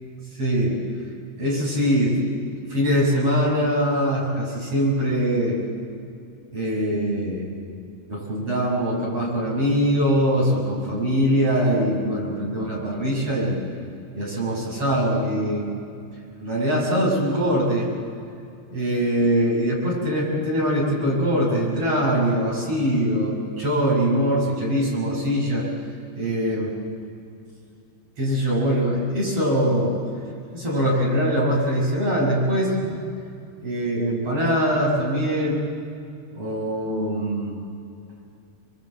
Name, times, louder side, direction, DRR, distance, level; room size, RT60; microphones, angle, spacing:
voice 1, 0.4-0.7 1.4-2.2 2.7-5.6 6.5-7.5 8.1-13.6 14.1-15.8 16.4-17.9 18.7-25.7 26.1-26.7 28.2-29.9 30.5-33.0 33.6-35.7 36.3-37.6, equal, 35° right, -3 dB, 7.6 m, -22 dB
29.0 x 22.5 x 8.1 m, 2.4 s
omnidirectional pair, 4.5 m